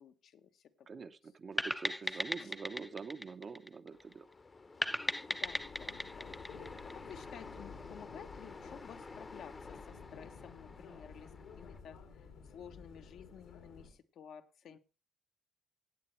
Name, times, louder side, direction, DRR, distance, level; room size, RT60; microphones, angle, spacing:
voice 1, 0.0-0.9 2.1-2.5 5.3-6.4 6.6-14.8, left 8 dB, 70° left, 7 dB, 1.0 m, -54 dB
voice 2, 0.9-4.3, right 5 dB, 40° right, 11 dB, 0.7 m, -45 dB
sound 1, 1.6-4.1 4.8-7.4, left 1 dB, 5° left, 0.6 m, -37 dB
sound 2, 3.9-11.8, left 3 dB, 30° left, 0.8 m, -51 dB
sound 3, 5.4-13.9, left 5 dB, 85° left, 2.4 m, -53 dB
16.5 x 8.8 x 3.2 m, 0.33 s
cardioid pair, 90°, 0 cm